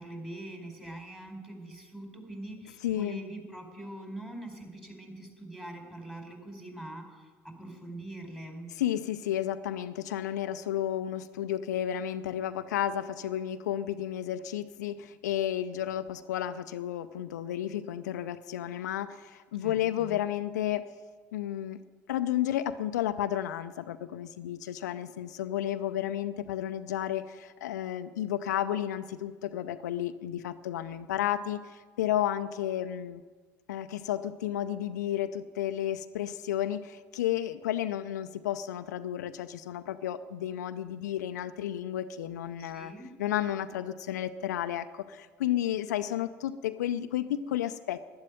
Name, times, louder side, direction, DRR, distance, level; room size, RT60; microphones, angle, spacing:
voice 1, 0.0-8.7 19.6-20.2 42.6-43.1, right 1 dB, 5° right, 3 dB, 4.3 m, -43 dB
voice 2, 2.8-3.2 8.8-20.9 21.3-21.8 22.1-33.2 33.7-42.9 43.2-48.0, left 11 dB, 80° left, 10 dB, 0.6 m, -32 dB
11.5 x 10.5 x 9.2 m, 1.4 s
hypercardioid pair, 65°, 9 cm